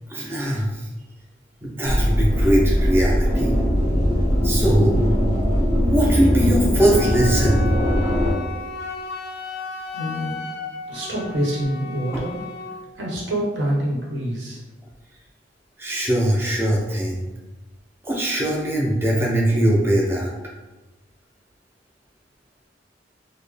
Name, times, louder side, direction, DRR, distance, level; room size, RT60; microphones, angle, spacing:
voice 1, 0.1-0.9 1.6-3.5 4.4-5.0 5.8-7.6 12.1-12.2 15.8-17.3 18.0-20.3, right 1 dB, 15° right, -3 dB, 0.5 m, -21 dB
sound 1, 1.8-8.3, equal, 45° right, 1.1 m, -20 dB
Wind instrument woodwind instrument, 6.8-12.8, left 3 dB, 60° left, 0.4 m, -34 dB
voice 2, 9.9-10.4 10.9-12.4 13.0-14.6, right 1 dB, 75° right, -4 dB, 1.1 m, -26 dB
4.1 x 2.1 x 3.3 m, 1.1 s
head